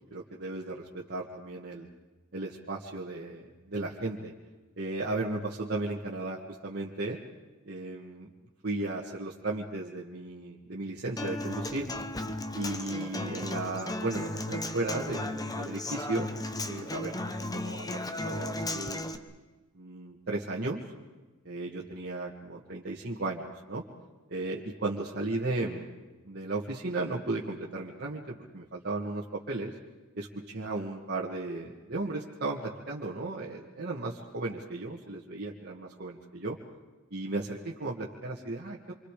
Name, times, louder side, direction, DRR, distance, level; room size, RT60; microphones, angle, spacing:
voice 1, 0.1-1.9 2.3-4.3 4.8-7.2 7.7-8.3 8.6-11.9 12.5-16.4 16.7-17.9 18.2-19.0 19.7-20.8 21.4-23.8 24.3-25.9 26.2-29.7 30.2-36.6 37.1-38.9, right 2 dB, 50° right, -4 dB, 2.1 m, -35 dB
Human voice / Acoustic guitar, 11.2-19.2, left 1 dB, 15° left, 1.1 m, -35 dB
27.5 x 25.5 x 5.1 m, 1.2 s
head